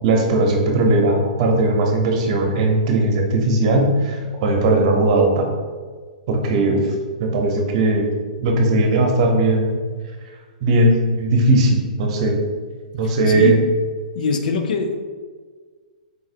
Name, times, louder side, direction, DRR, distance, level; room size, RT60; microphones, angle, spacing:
voice 1, 0.0-5.5 6.3-6.8 7.2-8.1 8.4-9.8 10.6-12.4 12.9-13.6, right 2 dB, 45° right, 2 dB, 0.7 m, -18 dB
voice 2, 13.3-13.7 14.1-14.9, left 5 dB, 70° left, 6 dB, 0.5 m, -22 dB
4.0 x 4.0 x 2.5 m, 1.5 s
hypercardioid pair, 145°, 5 cm